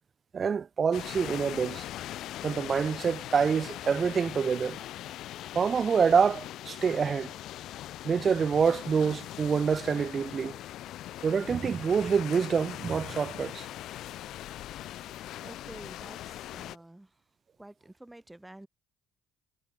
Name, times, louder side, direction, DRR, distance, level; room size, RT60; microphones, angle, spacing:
voice 1, 0.3-1.9 2.4-4.8 5.5-7.3 8.0-10.6 11.2-13.7, right 6 dB, 40° right, 0.4 m, -26 dB
sound 1, 0.9-16.8, left 13 dB, 70° left, 5.3 m, -41 dB
voice 2, 15.4-17.1 17.6-18.7, right 1 dB, 10° right, 3.0 m, -49 dB
supercardioid pair, 80°, 0 cm